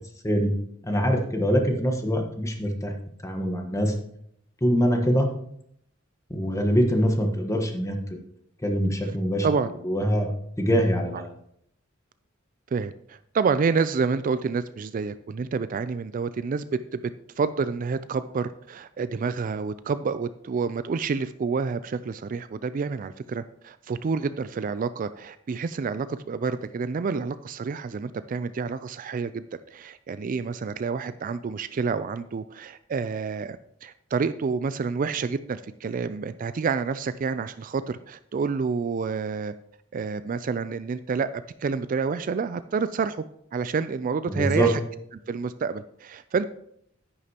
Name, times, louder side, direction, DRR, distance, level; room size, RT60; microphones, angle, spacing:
voice 1, 0.8-2.9 3.2-3.9 4.6-5.3 6.3-8.0 8.6-9.5 9.8-10.3 10.6-11.3 44.3-44.7, equal, 15° left, 3 dB, 1.3 m, -23 dB
voice 2, 12.7-17.0 17.4-29.4 29.7-39.5 39.9-41.3 41.6-43.2 43.5-44.8 45.3-46.5, right 5 dB, 45° right, 13 dB, 0.3 m, -28 dB
10.0 x 9.8 x 2.9 m, 0.70 s
head